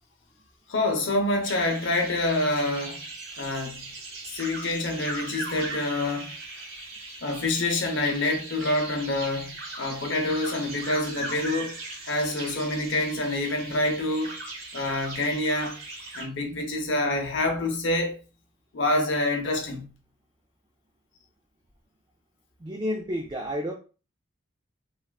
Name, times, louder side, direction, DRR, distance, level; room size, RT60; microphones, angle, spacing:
voice 1, 0.7-3.0 3.4-3.9 4.3-6.3 7.2-11.8 12.0-14.4 14.7-15.8 16.1-18.2 18.7-19.9, left 2 dB, 60° left, 0.7 m, -27 dB
sound 1, 1.4-16.2, right 2 dB, 75° right, 1.0 m, -39 dB
voice 2, 22.6-23.7, equal, 20° right, 0.3 m, -30 dB
3.4 x 2.3 x 2.3 m
head